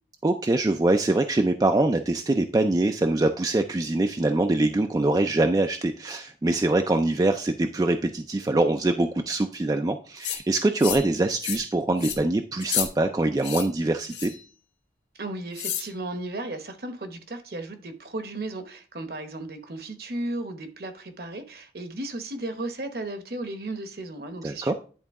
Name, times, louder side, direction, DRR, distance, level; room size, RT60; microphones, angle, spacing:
voice 1, 0.2-14.3 24.4-24.7, right 2 dB, 20° right, 0.3 m, -24 dB
sound 1, 10.2-10.4 10.8-11.1 11.4-11.7 12.0-12.2 12.6-12.9 13.4-13.7 14.1-14.4 15.6-15.9, left 9 dB, 90° left, 1.2 m, -30 dB
voice 2, 15.2-24.7, right 2 dB, 60° right, 1.0 m, -35 dB
10.5 x 3.8 x 3.5 m
head